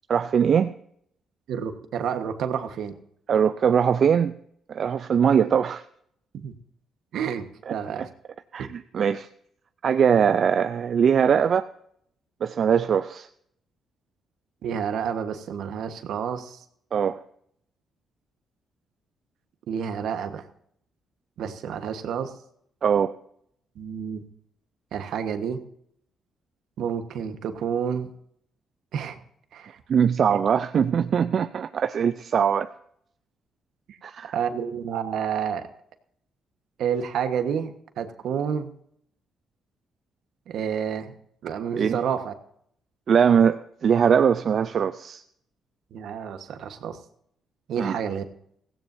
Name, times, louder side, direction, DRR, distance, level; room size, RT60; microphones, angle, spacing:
voice 1, 0.1-0.7 3.3-4.3 4.7-5.8 7.7-7.8 8.0-8.1 8.5-9.3 9.8-11.7 12.4-13.3 16.9-17.2 22.8-23.1 29.9-32.7 34.0-34.4 41.8-42.0 43.1-45.2 47.8-48.0, right 7 dB, 55° right, 10 dB, 0.5 m, -21 dB
voice 2, 1.5-3.0 6.3-6.6 7.1-8.1 8.6-8.7 14.6-16.6 19.7-20.4 21.4-22.3 23.7-24.2 24.9-25.6 26.8-28.1 28.9-29.2 29.5-29.8 30.3-30.4 33.9-34.0 34.3-35.7 36.8-38.7 40.5-41.1 41.4-42.3 45.9-47.0 47.7-48.2, right 7 dB, 75° right, 8 dB, 1.3 m, -29 dB
16.5 x 16.5 x 2.7 m, 0.69 s
cardioid pair, 90°, 0 cm